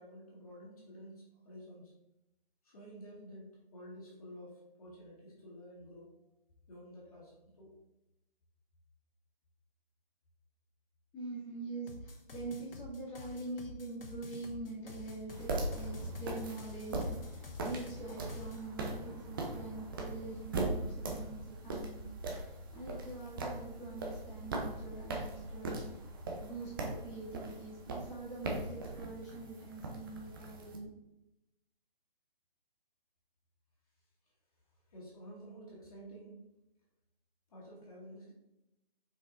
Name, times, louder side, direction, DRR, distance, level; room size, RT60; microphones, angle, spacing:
voice 1, 0.0-1.9 2.6-6.2 6.7-7.8 34.2-34.3 34.7-36.5 37.5-38.3, equal, 40° left, -5 dB, 2.0 m, -51 dB
voice 2, 11.1-22.2 22.4-25.9 26.4-30.9, right 2 dB, 10° left, -10 dB, 2.3 m, -44 dB
sound 1, 11.9-18.6, left 2 dB, 70° left, 1.3 m, -49 dB
sound 2, 15.3-30.8, right 2 dB, 25° right, 0.9 m, -40 dB
6.3 x 4.9 x 4.0 m, 0.91 s
figure-of-eight pair, 150°, 29 cm